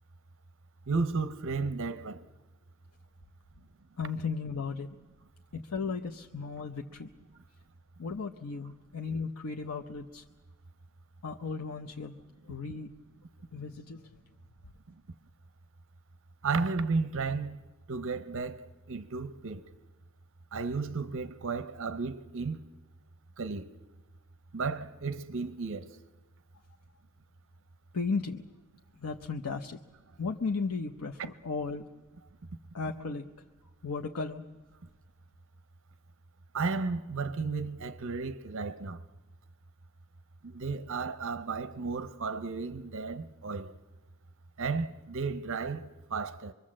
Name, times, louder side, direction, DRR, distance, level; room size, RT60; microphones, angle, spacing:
voice 1, 0.9-2.2 16.4-17.6 17.9-19.6 20.5-22.6 23.4-23.7 24.5-25.9 31.2-31.3 36.5-39.0 40.4-43.7 44.6-46.5, right 4 dB, 60° right, 0.8 m, -33 dB
voice 2, 4.0-5.0 5.5-7.1 8.0-10.2 11.2-12.1 12.4-12.9 13.5-14.1 27.9-28.4 29.0-29.8 30.2-31.9 32.7-33.3 33.8-34.4, left 4 dB, 85° left, 0.8 m, -35 dB
24.5 x 23.0 x 7.6 m
head